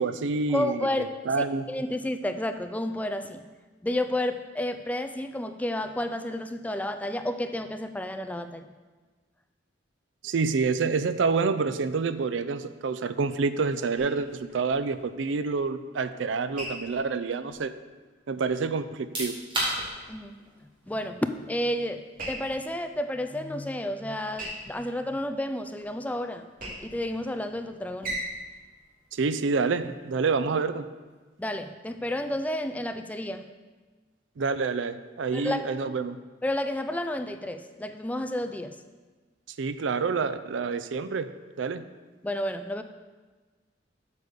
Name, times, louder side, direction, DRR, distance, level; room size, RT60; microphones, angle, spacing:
voice 1, 0.0-1.7 10.2-17.7 18.3-19.3 29.1-30.9 34.4-36.2 39.6-41.3 41.6-41.8, right 4 dB, 80° right, 13 dB, 0.5 m, -28 dB
voice 2, 0.5-3.4 3.8-8.7 20.1-20.3 20.9-22.0 22.3-26.5 26.8-28.2 31.4-33.4 35.3-35.7 36.4-38.7 42.2-42.8, left 1 dB, 10° left, 8 dB, 0.3 m, -31 dB
sound 1, 14.0-30.0, right 1 dB, 50° right, 2.5 m, -44 dB
sound 2, 18.9-31.5, right 1 dB, 30° right, 2.5 m, -41 dB
8.3 x 5.1 x 6.7 m, 1.3 s
head